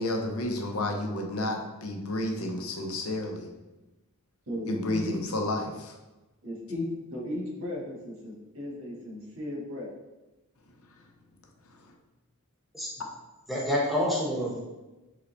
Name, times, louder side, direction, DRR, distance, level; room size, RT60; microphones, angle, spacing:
voice 1, 0.0-3.5 4.7-5.9 11.8-11.9, left 1 dB, 75° left, 2 dB, 0.7 m, -31 dB
voice 2, 4.5-5.0 6.4-9.9, left 1 dB, 70° right, -3 dB, 1.4 m, -36 dB
voice 3, 13.5-14.6, left 1 dB, ahead, -5 dB, 0.9 m, -27 dB
3.8 x 3.3 x 3.9 m, 1.1 s
head